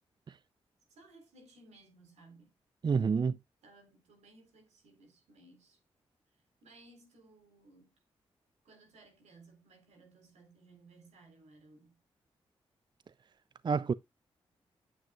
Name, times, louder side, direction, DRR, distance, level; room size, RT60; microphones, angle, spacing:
voice 1, 0.9-2.6 3.6-5.8 6.6-7.9 8.6-12.0, right 2 dB, 80° right, 3.5 m, -59 dB
voice 2, 2.8-3.4 13.6-13.9, right 5 dB, 40° right, 0.4 m, -28 dB
9.5 x 7.8 x 2.3 m
supercardioid pair, 45°, 11 cm